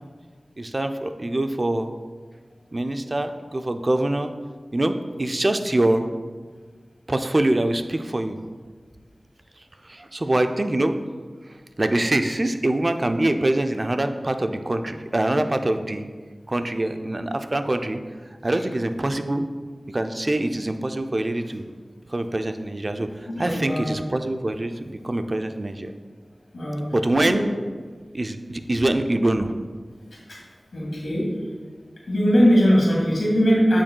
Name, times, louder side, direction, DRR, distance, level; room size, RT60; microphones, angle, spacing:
voice 1, 0.6-1.9 2.7-4.3 4.7-6.1 7.1-8.4 9.8-10.9 11.8-16.1 16.5-18.0 18.4-19.5 19.9-21.6 22.1-25.9 26.9-27.4 28.1-29.5, right 1 dB, 40° right, 7 dB, 0.4 m, -24 dB
voice 2, 23.3-23.9 26.5-26.8 27.2-27.4 30.7-31.2 32.1-33.8, equal, 85° left, -4 dB, 1.8 m, -20 dB
8.5 x 5.2 x 2.2 m, 1.5 s
wide cardioid pair, 50°, 0 cm